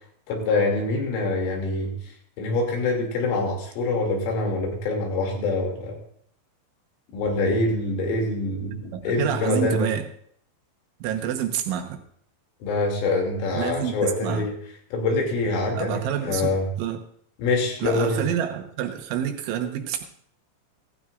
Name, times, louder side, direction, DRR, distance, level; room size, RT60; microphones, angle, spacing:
voice 1, 0.3-1.9 2.4-6.0 7.1-9.9 12.6-14.5 14.9-16.7 17.4-18.2, left 2 dB, 85° left, 0 dB, 5.2 m, -25 dB
voice 2, 8.9-10.0 11.0-12.0 13.5-14.4 15.7-17.0 17.8-20.0, right 10 dB, 80° right, 4 dB, 3.6 m, -28 dB
16.5 x 15.5 x 2.5 m, 0.65 s
omnidirectional pair, 5.5 m